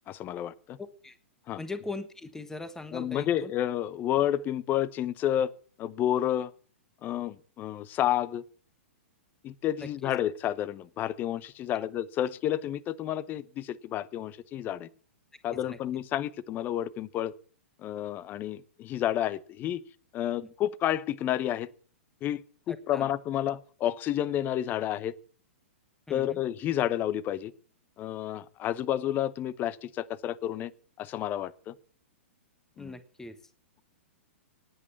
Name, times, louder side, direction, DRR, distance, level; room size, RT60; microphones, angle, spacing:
voice 1, 0.1-0.8 1.5-1.6 2.9-5.5 5.8-6.5 7.0-8.4 9.4-14.9 15.4-17.3 17.8-19.8 20.1-21.7 22.2-22.4 22.7-25.1 26.1-27.5 28.0-30.7 31.0-31.7 32.8-32.9, left 11 dB, 25° left, 0.9 m, -30 dB
voice 2, 0.8-1.2 1.6-3.5 9.8-9.9 11.7-11.9 15.5-15.8 22.7-23.1 26.1-26.4 32.8-33.3, left 3 dB, 5° left, 1.3 m, -40 dB
19.5 x 8.5 x 7.1 m
figure-of-eight pair, 110°, 7 cm